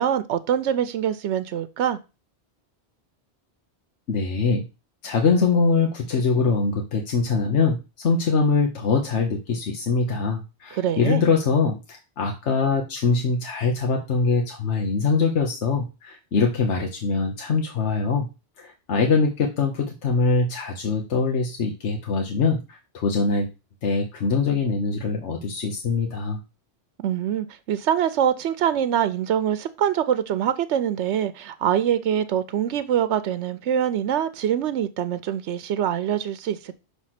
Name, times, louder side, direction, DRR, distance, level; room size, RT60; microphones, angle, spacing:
voice 1, 0.0-2.0 10.7-11.2 27.0-36.7, right 9 dB, 85° right, 0.9 m, -24 dB
voice 2, 4.1-4.6 5.0-18.3 18.6-23.5 23.8-26.4, left 4 dB, 85° left, 1.3 m, -23 dB
6.3 x 3.4 x 5.8 m
omnidirectional pair, 1.2 m